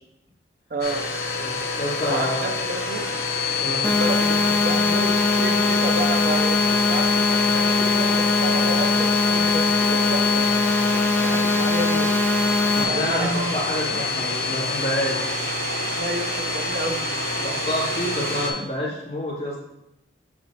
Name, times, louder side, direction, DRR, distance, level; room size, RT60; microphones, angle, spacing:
voice 1, 0.7-1.1 2.1-3.1 3.8-10.4 11.2-12.1 12.9-13.7 16.0-17.1, right 2 dB, 50° right, 4 dB, 0.5 m, -30 dB
Domestic sounds home sounds, 0.8-18.5, left 4 dB, 55° left, 1.0 m, -26 dB
voice 2, 1.4-2.4 3.6-3.9 12.6-15.4 17.4-19.7, equal, 35° left, -7 dB, 2.1 m, -28 dB
sound 1, 3.8-12.8, left 2 dB, 10° left, 0.4 m, -22 dB
7.4 x 5.1 x 2.8 m, 0.86 s
head